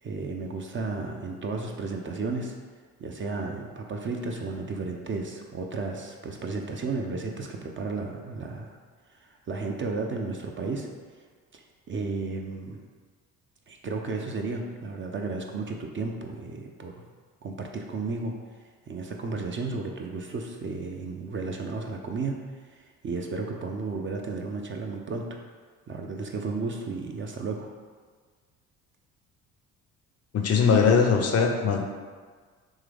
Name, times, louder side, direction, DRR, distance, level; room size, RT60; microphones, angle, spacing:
voice 1, 0.0-2.5 3.0-8.8 9.1-10.9 11.5-11.6 11.9-12.8 13.7-17.0 17.4-18.3 18.9-22.4 22.7-25.4 25.9-27.7, right 3 dB, 30° right, 2 dB, 0.5 m, -33 dB
voice 2, 30.3-31.8, left 5 dB, 40° left, 3 dB, 0.6 m, -21 dB
3.7 x 2.9 x 3.4 m, 1.5 s
hypercardioid pair, 55°, 40 cm